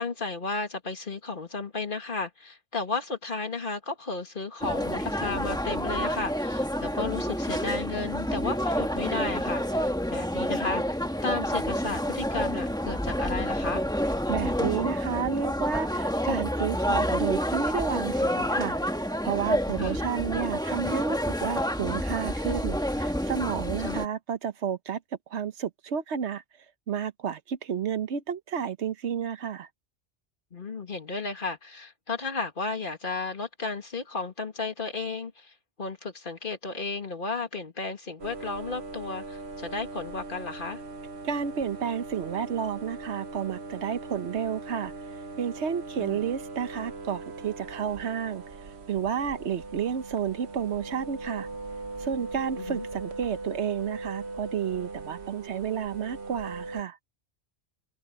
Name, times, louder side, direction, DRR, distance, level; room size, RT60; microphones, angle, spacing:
voice 1, 0.0-13.8 19.8-20.0 23.8-24.1 30.5-40.8 46.0-46.2 52.6-52.9, left 3 dB, 50° left, 2.4 m, -33 dB
sound 1, 4.6-24.1, equal, 5° left, 1.4 m, -29 dB
voice 2, 14.3-18.8 19.2-25.0 25.3-26.4 26.9-29.7 41.2-44.9 45.4-48.4 48.9-51.5 52.0-57.0, right 7 dB, 85° right, 1.2 m, -31 dB
sound 2, 38.2-56.8, right 3 dB, 70° right, 1.4 m, -40 dB
omnidirectional pair, 1.1 m